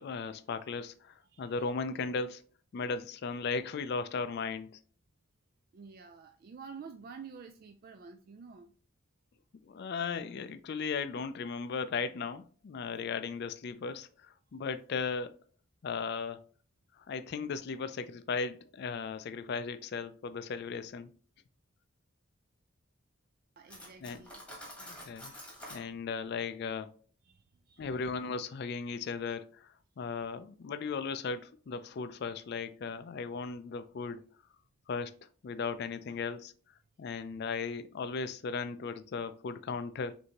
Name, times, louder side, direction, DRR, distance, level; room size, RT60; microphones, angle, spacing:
voice 1, 0.0-2.4 2.7-4.7 9.6-15.3 15.8-16.4 17.1-21.1 24.0-24.2 24.8-25.3 25.7-27.0 27.8-34.2 34.9-35.1 35.4-36.5 37.0-40.2, left 5 dB, 55° left, 0.4 m, -36 dB
voice 2, 1.2-1.7 5.7-8.7 23.6-24.4 27.2-28.1, right 5 dB, 45° right, 0.3 m, -50 dB
Cutlery silverware, 23.7-25.9, equal, 5° left, 1.3 m, -47 dB
6.4 x 2.7 x 2.9 m
head